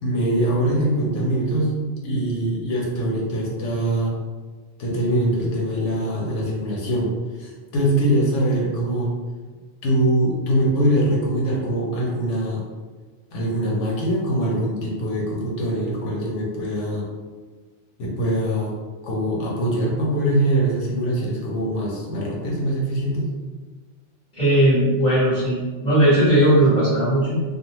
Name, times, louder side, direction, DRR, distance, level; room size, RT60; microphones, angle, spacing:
voice 1, 0.0-4.1 4.8-7.1 7.4-9.1 9.8-12.6 13.3-17.1 18.0-18.7 19.0-23.3, right 1 dB, 85° left, -2 dB, 1.0 m, -23 dB
voice 2, 24.3-27.3, right 1 dB, 35° left, -12 dB, 1.2 m, -17 dB
2.5 x 2.2 x 2.9 m, 1.4 s
omnidirectional pair, 1.2 m